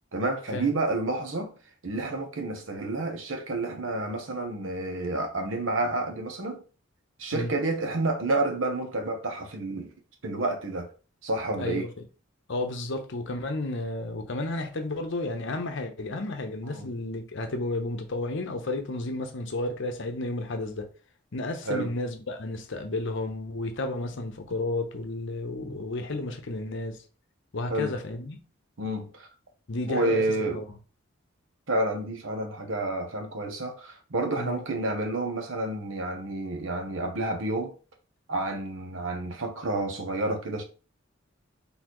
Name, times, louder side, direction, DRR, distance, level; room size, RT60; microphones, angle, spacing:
voice 1, 0.1-1.5 1.8-6.6 7.2-9.9 10.2-10.9 11.2-11.9 16.7-16.9 21.7-21.9 27.7-28.0 28.8-29.3 29.9-30.6 31.7-37.7 38.3-40.6, right 2 dB, 70° right, 1.0 m, -29 dB
voice 2, 11.6-11.9 12.5-20.9 21.3-27.0 27.5-28.4 29.7-30.2 30.5-30.6 34.4-34.6, left 2 dB, 65° left, 0.8 m, -32 dB
4.2 x 3.4 x 3.0 m
head